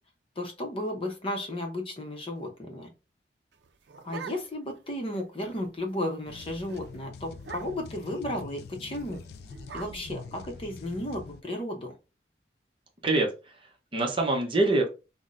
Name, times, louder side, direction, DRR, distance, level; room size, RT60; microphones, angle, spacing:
voice 1, 0.4-2.9 4.0-9.2 9.7-11.9, left 1 dB, 30° left, 3 dB, 0.7 m, -34 dB
sound 1, 3.5-4.8 5.2-5.3 5.5-5.9 6.2-6.4 6.7-6.8 7.4-8.0 8.9-10.9, right 5 dB, 80° right, 0.4 m, -45 dB
sound 2, 6.3-11.4, left 5 dB, 60° left, 0.3 m, -45 dB
voice 2, 13.0-14.9, right 2 dB, 30° right, 2 dB, 0.7 m, -26 dB
5.6 x 2.1 x 2.5 m, 0.30 s
head